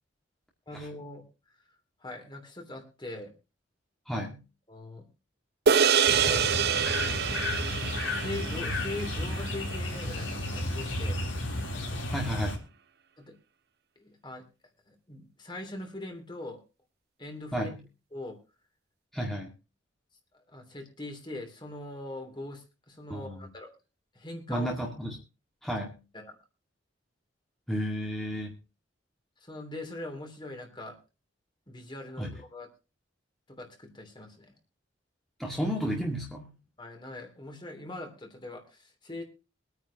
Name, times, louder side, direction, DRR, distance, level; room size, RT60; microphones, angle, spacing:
voice 1, 0.7-1.2 2.0-3.3 4.7-5.1 6.2-6.4 7.8-11.2 13.2-13.4 14.0-14.4 14.9-16.6 17.2-17.7 18.1-18.4 20.3-23.7 24.1-24.8 26.1-26.3 29.4-31.0 31.7-32.7 33.5-34.5 36.8-39.2, left 2 dB, 25° left, 4 dB, 3.0 m, -41 dB
voice 2, 4.1-4.4 12.1-12.6 17.5-17.8 19.1-19.5 23.1-23.5 24.5-25.2 25.6-26.0 27.7-28.6 32.2-32.3 35.4-36.5, equal, ahead, -2 dB, 2.0 m, -32 dB
sound 1, 5.7-10.2, right 7 dB, 55° right, 0.7 m, -27 dB
sound 2, 6.0-12.6, left 1 dB, 80° left, 3.5 m, -33 dB
23.5 x 9.5 x 2.9 m, 0.31 s
head